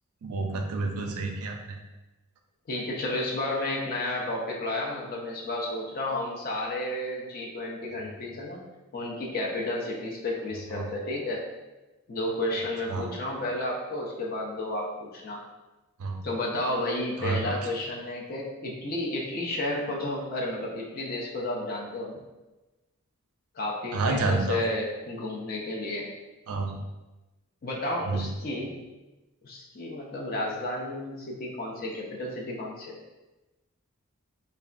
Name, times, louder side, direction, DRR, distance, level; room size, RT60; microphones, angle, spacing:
voice 1, 0.2-1.8 10.7-10.9 12.9-13.1 16.0-16.2 17.2-17.4 23.9-24.6 26.5-26.8 28.0-28.2, right 3 dB, 80° right, 3 dB, 0.4 m, -29 dB
voice 2, 2.7-8.6 8.9-11.4 12.1-15.4 16.2-22.2 23.5-26.1 27.6-28.8 29.4-33.0, left 1 dB, 40° left, -1 dB, 0.4 m, -32 dB
3.3 x 2.2 x 2.4 m, 1.1 s
head